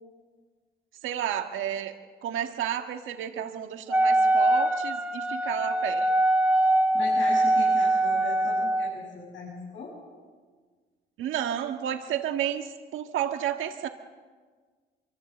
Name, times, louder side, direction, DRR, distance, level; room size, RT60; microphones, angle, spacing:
voice 1, 1.0-1.9 2.2-6.1 11.2-13.9, right 10 dB, 85° right, 6 dB, 1.6 m, -31 dB
Wind instrument woodwind instrument, 3.9-8.9, right 1 dB, 5° right, 1.7 m, -23 dB
voice 2, 6.9-9.9, left 4 dB, 75° left, -5 dB, 7.6 m, -38 dB
24.0 x 24.0 x 7.8 m, 1.5 s
cardioid pair, 90°, 20 cm